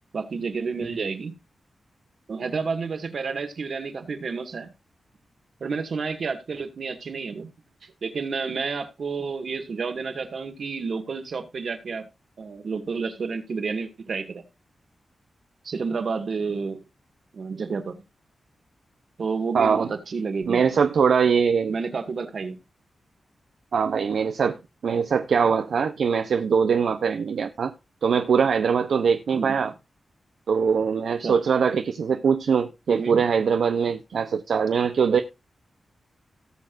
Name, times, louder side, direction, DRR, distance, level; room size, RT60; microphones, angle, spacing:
voice 1, 0.1-1.3 2.3-4.7 5.6-7.5 8.0-12.1 12.4-14.4 15.6-16.8 17.3-18.0 19.2-20.6 21.7-22.6 29.3-29.6 31.2-31.3 32.9-33.2, right 5 dB, 60° right, 2.0 m, -30 dB
voice 2, 19.5-19.9 20.5-21.7 23.7-24.6 24.8-27.7 28.0-29.7 30.5-35.2, right 6 dB, 80° right, 0.7 m, -22 dB
18.0 x 6.6 x 2.6 m
wide cardioid pair, 105°, 0 cm